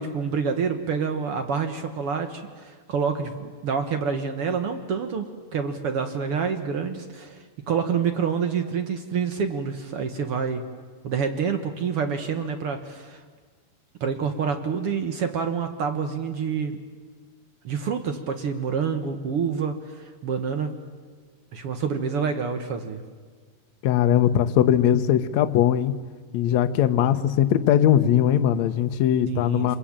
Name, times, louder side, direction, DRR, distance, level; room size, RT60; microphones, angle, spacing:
voice 1, 0.0-5.3 5.5-10.6 11.0-13.2 14.0-16.8 17.6-20.7 21.5-23.0 29.3-29.8, right 6 dB, 60° right, 7 dB, 1.6 m, -27 dB
voice 2, 23.8-25.9 26.3-29.8, left 10 dB, 70° left, 9 dB, 1.8 m, -20 dB
27.0 x 21.5 x 8.8 m, 1.5 s
omnidirectional pair, 4.1 m